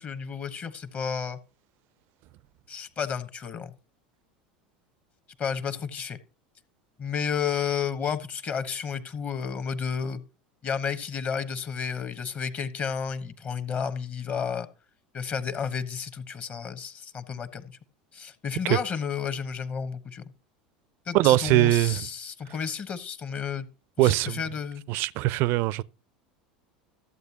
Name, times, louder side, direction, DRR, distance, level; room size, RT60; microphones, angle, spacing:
voice 1, 0.0-1.4 2.7-3.7 5.4-6.2 7.0-10.2 10.6-14.7 15.1-17.8 18.1-20.2 21.1-23.7 24.0-24.8, left 6 dB, 35° left, 1.1 m, -32 dB
voice 2, 21.1-22.1 24.0-24.4 24.9-25.8, right 17 dB, 55° right, 0.4 m, -22 dB
14.0 x 8.0 x 2.9 m
hypercardioid pair, 80°, 4 cm